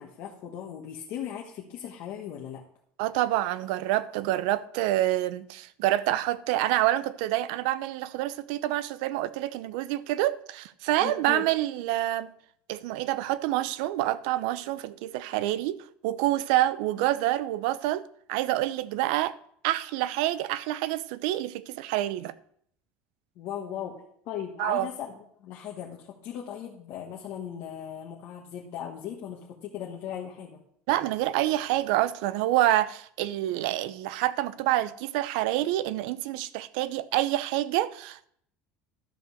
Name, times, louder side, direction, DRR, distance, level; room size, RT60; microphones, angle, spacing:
voice 1, 0.0-2.6 11.0-11.5 23.4-24.0 24.2-30.6, left 9 dB, 50° left, 1.4 m, -38 dB
voice 2, 3.0-12.3 12.7-18.0 18.3-19.3 19.6-22.3 24.6-24.9 30.9-38.3, right 15 dB, 75° right, 0.6 m, -27 dB
12.0 x 5.3 x 6.4 m
cardioid pair, 155°, 5 cm